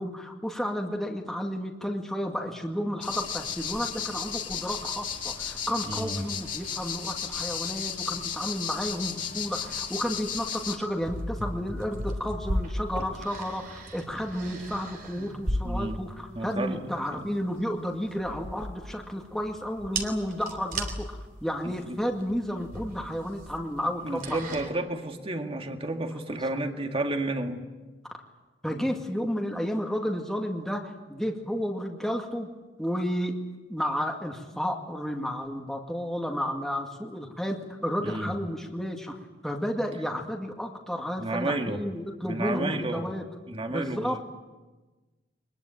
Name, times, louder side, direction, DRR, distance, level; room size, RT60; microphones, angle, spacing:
voice 1, 0.0-24.6 28.6-32.5 32.8-33.3 33.7-37.6 37.8-43.2 43.7-44.2, equal, ahead, 1 dB, 2.1 m, -32 dB
sound 1, 3.0-10.8, left 7 dB, 45° left, 2.7 m, -34 dB
voice 2, 5.9-6.3 15.1-15.3 15.6-16.0 16.3-17.3 21.6-22.0 24.0-27.6 28.7-28.9 38.0-38.3 41.2-41.8 42.2-43.1 43.5-44.2, right 2 dB, 35° right, 5 dB, 2.0 m, -32 dB
sound 2, 10.9-24.7, right 1 dB, 50° right, 3.4 m, -36 dB
23.5 x 21.0 x 8.9 m, 1.2 s
head